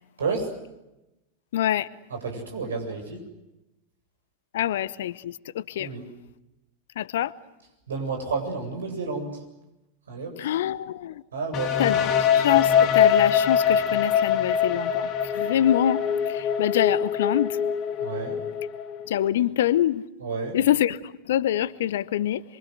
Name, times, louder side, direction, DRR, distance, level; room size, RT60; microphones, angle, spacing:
voice 1, 0.2-0.5 2.1-3.2 5.8-6.0 7.9-9.4 10.1-10.5 11.3-11.8 18.0-18.4 20.2-20.6, right 4 dB, 70° right, 7.8 m, -31 dB
voice 2, 1.5-1.9 4.5-5.9 7.0-7.3 10.4-11.2 11.8-17.6 19.1-20.0 20.5-22.4, left 11 dB, 60° left, 1.0 m, -25 dB
sound 1, 11.5-19.3, left 8 dB, 35° left, 2.0 m, -23 dB
27.0 x 24.5 x 8.0 m
figure-of-eight pair, 90°, 0 cm